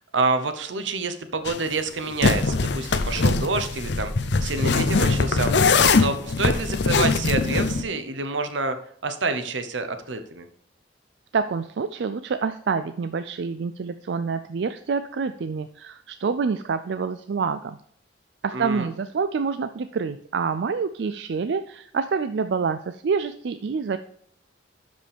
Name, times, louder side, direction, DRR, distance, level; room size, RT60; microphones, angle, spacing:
voice 1, 0.1-4.1 4.4-5.5 6.0-8.8 9.0-10.5 18.5-18.9, right 3 dB, 85° right, 9 dB, 0.9 m, -27 dB
sound 1, 1.5-1.6 2.2-7.8, left 4 dB, 65° left, 0.6 m, -22 dB
voice 2, 11.3-17.8 18.4-24.0, right 5 dB, 65° right, 10 dB, 0.4 m, -27 dB
12.5 x 5.3 x 3.5 m, 0.65 s
head